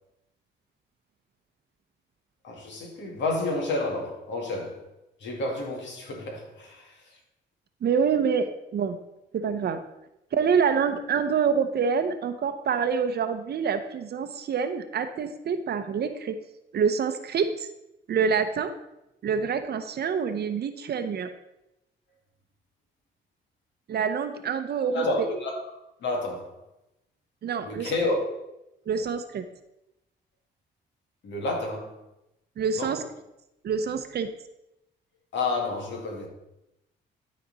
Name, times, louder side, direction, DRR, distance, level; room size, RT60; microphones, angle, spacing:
voice 1, 2.4-4.8 5.2-7.2 24.9-25.6 26.0-26.6 27.6-28.3 31.2-32.0 32.7-33.0 35.3-36.3, left 2 dB, 70° left, 2.2 m, -30 dB
voice 2, 7.8-9.0 9.3-9.8 10.3-16.4 16.7-17.7 18.1-18.7 19.2-21.3 23.9-25.1 27.4-28.0 28.9-29.5 32.6-33.0 33.6-34.3, right 6 dB, 55° right, 0.8 m, -26 dB
12.5 x 4.3 x 4.1 m
cardioid pair, 90°, 20 cm